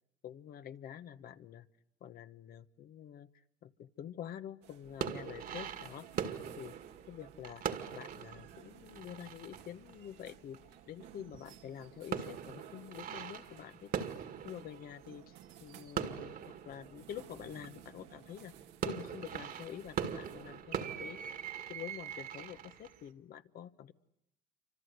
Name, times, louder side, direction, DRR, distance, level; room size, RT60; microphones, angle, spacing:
voice 1, 0.2-1.7 2.0-3.3 3.6-6.1 6.6-6.7 7.1-7.6 7.9-10.6 10.9-14.1 14.4-15.3 15.6-18.5 18.8-21.4 21.7-23.9, left 10 dB, 60° left, 12 dB, 1.2 m, -47 dB
sound 1, 4.6-20.6, right 10 dB, 90° right, 1.7 m, -57 dB
sound 2, 4.9-11.1 11.3-18.0 18.5-23.1, right 8 dB, 60° right, 2.0 m, -42 dB
28.0 x 25.5 x 8.1 m, 0.83 s
cardioid pair, 110°, 17 cm